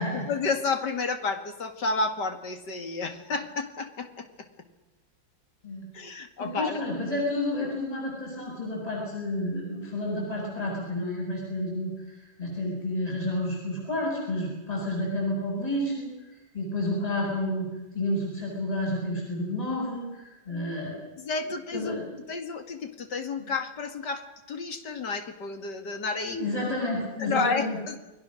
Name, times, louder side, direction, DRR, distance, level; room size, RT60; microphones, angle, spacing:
voice 1, 0.1-4.3 5.9-6.8 21.2-22.0 22.3-26.4 27.2-28.0, left 4 dB, 60° left, 6 dB, 2.7 m, -31 dB
voice 2, 6.4-17.7 17.9-21.0 21.7-22.0 23.4-23.5 26.2-27.8, left 1 dB, 20° left, -2 dB, 7.0 m, -30 dB
29.5 x 22.0 x 6.4 m, 1.1 s
omnidirectional pair, 2.1 m